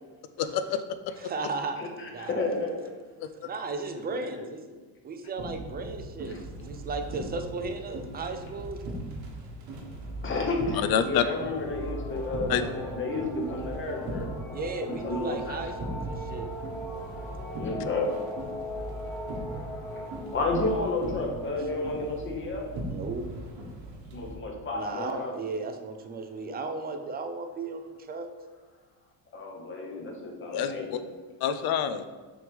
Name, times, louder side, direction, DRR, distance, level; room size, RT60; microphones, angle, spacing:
voice 1, 0.4-1.3 3.2-3.3 10.9-11.2 12.5-12.6 30.5-31.0 31.4-32.1, left 9 dB, 60° left, 12 dB, 0.5 m, -27 dB
voice 2, 1.2-1.8 2.1-2.4 3.4-4.6 5.0-8.8 14.5-16.5 22.9-23.3 24.8-28.3, right 3 dB, 25° right, 6 dB, 0.4 m, -35 dB
voice 3, 1.8-2.8 4.0-4.1 4.3-4.5 6.3-6.4 10.2-14.3 14.8-15.8 17.6-18.3 19.1-22.7 24.1-25.4 29.3-31.0, left 2 dB, 30° left, 1 dB, 1.0 m, -32 dB
sound 1, 5.4-24.4, right 1 dB, 60° right, 1.4 m, -39 dB
sound 2, 10.9-22.8, equal, 5° left, 1.0 m, -41 dB
6.3 x 3.2 x 5.2 m, 1.4 s
cardioid pair, 145°, 42 cm